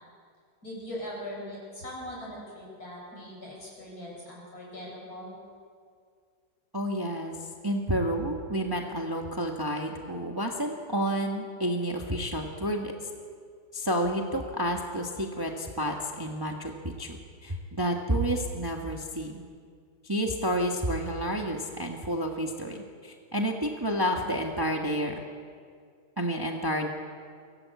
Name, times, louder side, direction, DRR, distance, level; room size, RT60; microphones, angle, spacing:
voice 1, 0.6-5.4, left 1 dB, 55° left, -3 dB, 8.0 m, -40 dB
voice 2, 6.7-7.3 7.6-12.9 13.7-17.2 17.4-19.4 20.0-25.2 26.2-26.9, equal, 15° right, 2 dB, 1.4 m, -30 dB
23.0 x 17.5 x 8.4 m, 2.1 s
omnidirectional pair, 1.9 m